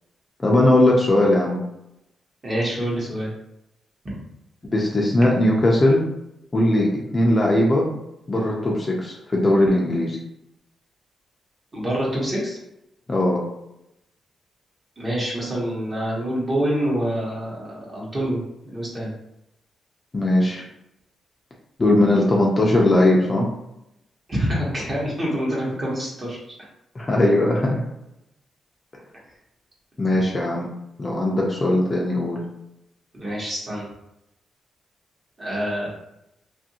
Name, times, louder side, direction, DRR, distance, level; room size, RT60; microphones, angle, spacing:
voice 1, 0.4-1.6 4.7-6.0 6.5-7.9 8.3-10.2 13.1-13.4 20.1-20.6 21.8-23.5 26.9-27.8 30.0-30.7 31.0-32.4, left 1 dB, 25° left, -2 dB, 0.5 m, -19 dB
voice 2, 2.4-3.3 4.0-4.2 11.7-12.6 15.0-19.1 24.3-26.4 33.1-33.8 35.4-35.9, equal, 30° right, -5 dB, 1.1 m, -26 dB
2.7 x 2.6 x 2.8 m, 0.83 s
cardioid pair, 125°, 0 cm